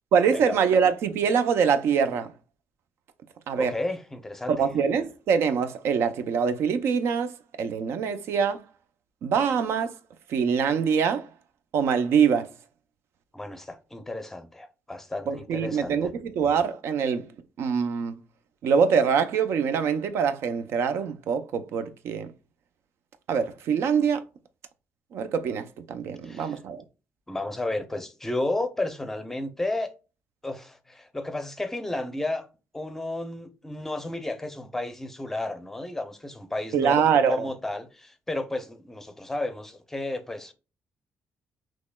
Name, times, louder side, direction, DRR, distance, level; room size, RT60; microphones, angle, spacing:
voice 1, 0.1-2.3 3.5-3.7 4.5-8.6 9.2-10.0 10.3-11.3 11.7-12.5 15.3-17.3 17.6-18.1 18.6-22.3 23.3-24.2 25.1-26.8 36.7-37.5, right 6 dB, 65° right, 0.6 m, -24 dB
voice 2, 3.6-4.7 13.3-16.1 26.2-26.6 27.3-29.9 30.4-32.5 32.7-40.5, left 2 dB, 10° left, 0.6 m, -32 dB
6.3 x 3.1 x 2.3 m
cardioid pair, 175°, 5 cm